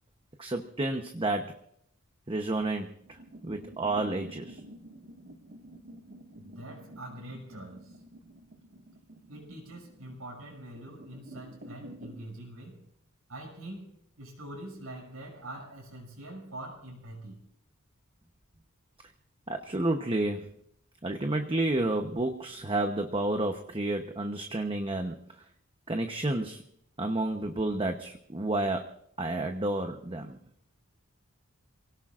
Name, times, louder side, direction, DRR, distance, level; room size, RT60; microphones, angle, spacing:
voice 1, 0.4-1.5 2.3-2.9 3.4-4.6 19.5-20.5 21.0-25.2 25.9-26.6 27.0-28.9 29.2-30.4, right 2 dB, 25° right, 5 dB, 0.9 m, -30 dB
sound 1, 2.9-12.2, right 1 dB, 55° right, 1.8 m, -49 dB
voice 2, 6.4-8.0 9.3-12.9 13.3-17.4, right 1 dB, 80° right, -1 dB, 6.1 m, -44 dB
27.5 x 17.5 x 2.5 m, 0.70 s
head